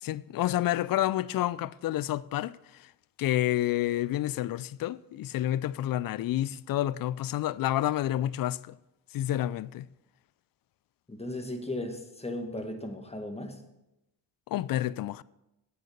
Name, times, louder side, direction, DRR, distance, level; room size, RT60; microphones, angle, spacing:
voice 1, 0.0-2.9 3.2-8.8 9.1-9.9 14.5-15.2, left 13 dB, 50° left, 0.5 m, -29 dB
voice 2, 11.1-13.6, left 1 dB, 15° left, 1.7 m, -36 dB
8.5 x 6.8 x 6.7 m
supercardioid pair, 55°, 46 cm